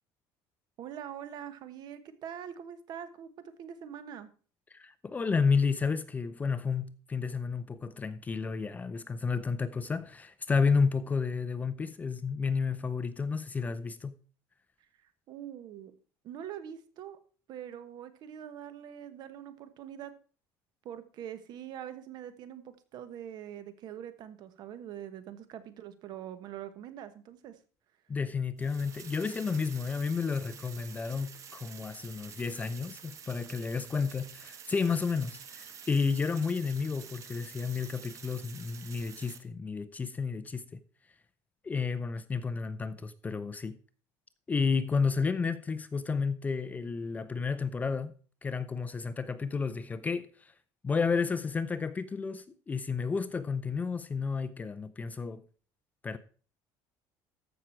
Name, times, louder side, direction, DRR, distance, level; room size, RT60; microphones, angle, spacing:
voice 1, 0.8-4.3 15.0-15.9 16.2-17.2 17.5-20.1 20.8-27.6, right 9 dB, 50° right, 1.3 m, -44 dB
voice 2, 4.7-14.1 28.1-40.8 41.6-43.8 44.5-48.1 48.4-50.5 50.8-55.4 56.0-56.2, left 5 dB, 15° left, 0.6 m, -31 dB
sound 1, 28.6-39.4, right 7 dB, 35° right, 1.3 m, -49 dB
14.5 x 6.1 x 4.5 m
cardioid pair, 145°, 9 cm